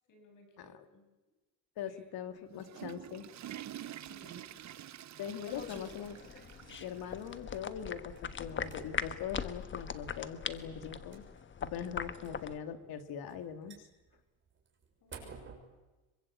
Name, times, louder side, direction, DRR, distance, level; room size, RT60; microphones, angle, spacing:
voice 1, 0.1-1.0 1.8-2.5 3.8-4.7 15.0-15.5, left 2 dB, 50° left, 4 dB, 6.8 m, -61 dB
voice 2, 1.8-3.3 5.2-6.2 6.8-11.3 11.6-13.9, left 8 dB, 70° left, 9 dB, 2.4 m, -41 dB
Water / Toilet flush, 2.4-7.4 7.7-7.8 8.5-8.6 9.9-10.0, right 12 dB, 45° right, 1.0 m, -48 dB
sound 1, 4.0-15.6, right 5 dB, 30° right, 6.5 m, -59 dB
sound 2, 5.5-12.6, left 7 dB, 30° left, 1.3 m, -41 dB
25.5 x 23.5 x 8.6 m, 1.1 s
cardioid pair, 130°, 38 cm